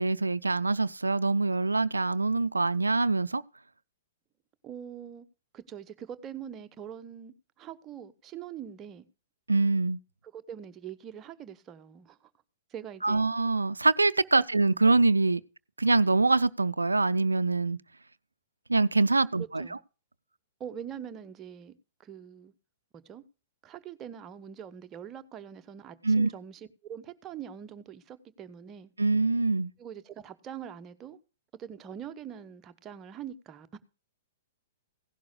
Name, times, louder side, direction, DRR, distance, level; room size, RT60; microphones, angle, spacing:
voice 1, 0.0-3.4 9.5-10.0 13.0-15.4 15.8-17.8 18.7-19.8 26.0-26.3 29.0-29.7, right 3 dB, 80° right, 0.4 m, -24 dB
voice 2, 4.6-5.2 5.5-9.1 10.3-12.3 12.7-13.3 19.4-19.8 20.6-21.7 22.0-22.5 22.9-23.2 23.6-28.9 29.8-31.2 31.5-33.8, right 9 dB, 25° right, 1.0 m, -43 dB
16.5 x 11.5 x 2.2 m
figure-of-eight pair, 110°, 0 cm